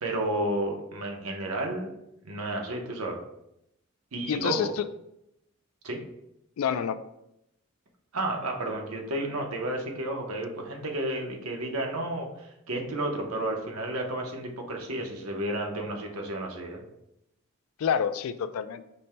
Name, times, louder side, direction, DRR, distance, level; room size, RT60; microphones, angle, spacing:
voice 1, 0.0-1.9 2.2-3.2 4.1-4.7 5.8-6.0 8.1-16.8, right 1 dB, 90° right, 2 dB, 0.8 m, -32 dB
voice 2, 4.3-4.9 6.6-7.0 17.8-18.8, left 7 dB, 80° left, 12 dB, 0.3 m, -28 dB
5.3 x 2.2 x 4.3 m, 0.81 s
head